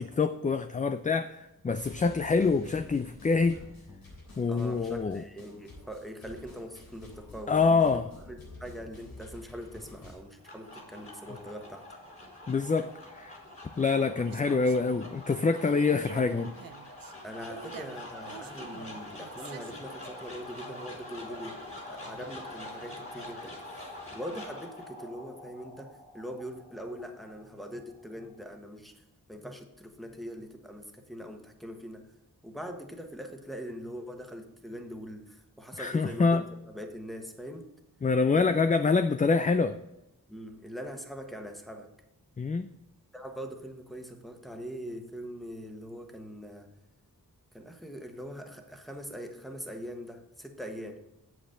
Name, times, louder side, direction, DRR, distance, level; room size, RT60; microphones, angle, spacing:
voice 1, 0.0-3.6 4.4-5.2 7.5-8.1 12.5-13.4 13.8-16.5 35.8-36.4 38.0-39.8 42.4-42.7, left 4 dB, 25° left, 10 dB, 0.4 m, -26 dB
sound 1, 1.7-10.1, left 2 dB, 85° left, 3.5 m, -49 dB
voice 2, 4.5-12.0 17.2-23.6 24.1-32.1 32.4-37.7 38.4-38.6 40.3-41.9 43.1-46.7 47.5-51.0, equal, ahead, 4 dB, 1.3 m, -42 dB
sound 2, 10.1-28.4, left 1 dB, 40° left, 3.5 m, -45 dB
sound 3, 14.2-20.1, right 8 dB, 75° right, 0.7 m, -48 dB
8.1 x 7.8 x 3.8 m, 0.93 s
wide cardioid pair, 80°, 35 cm